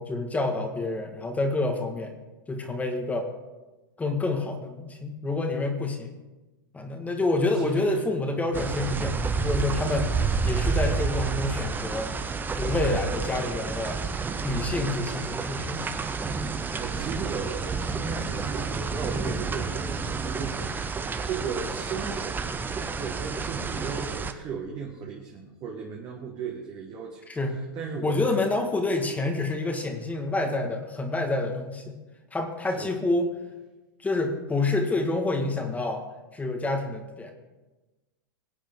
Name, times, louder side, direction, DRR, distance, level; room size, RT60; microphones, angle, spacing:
voice 1, 0.0-2.1 2.5-3.3 4.0-6.2 6.7-10.1 10.4-12.1 12.5-14.0 14.4-15.8 16.3-16.5 27.3-27.6 28.0-32.0 32.3-33.3 34.0-36.0 36.3-37.3, left 2 dB, 10° left, 4 dB, 1.7 m, -28 dB
voice 2, 7.5-8.1 16.7-27.2 27.5-28.3 32.7-32.9, right 6 dB, 35° right, 0 dB, 1.9 m, -36 dB
sound 1, 8.5-24.3, right 4 dB, 15° right, 0.9 m, -30 dB
21.5 x 8.5 x 3.8 m, 1.1 s
hypercardioid pair, 100°, 12 cm